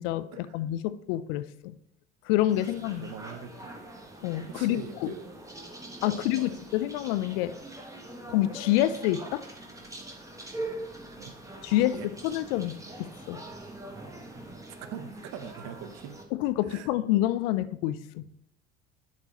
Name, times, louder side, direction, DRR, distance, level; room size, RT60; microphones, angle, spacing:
voice 1, 0.0-1.8 2.3-3.0 4.2-5.1 6.0-7.5 8.3-9.4 11.6-13.4 16.4-18.2, left 14 dB, 60° left, 14 dB, 0.5 m, -28 dB
sound 1, 2.5-16.2, right 2 dB, 10° right, 1.4 m, -43 dB
voice 2, 3.0-3.8 4.5-5.3 6.1-6.6 11.1-11.3 11.8-12.1 14.8-16.2 16.6-16.9, right 8 dB, 50° right, 11 dB, 0.8 m, -42 dB
11.5 x 4.5 x 2.9 m, 0.76 s
figure-of-eight pair, 65°, 34 cm